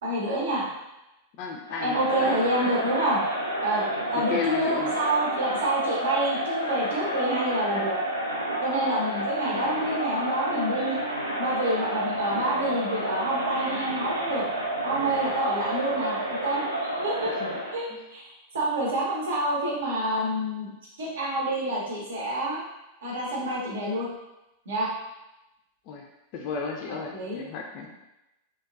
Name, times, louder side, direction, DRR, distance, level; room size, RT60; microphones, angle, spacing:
voice 1, 0.0-0.7 1.8-3.2 3.6-3.8 4.1-8.0 8.6-11.0 11.4-14.4 14.8-17.3 17.7-18.2 18.5-20.7 21.0-22.6 23.0-24.1 24.7-24.9 26.9-27.4, right 1 dB, 65° right, -4 dB, 0.7 m, -28 dB
voice 2, 1.4-2.3 4.2-4.9 17.3-17.6 17.9-18.0 25.9-26.1 26.3-27.9, left 5 dB, 45° left, 1 dB, 0.3 m, -33 dB
Crowd, 1.7-17.9, right 1 dB, 85° right, 0.4 m, -30 dB
2.9 x 2.2 x 2.3 m, 0.95 s
figure-of-eight pair, 90°, 0 cm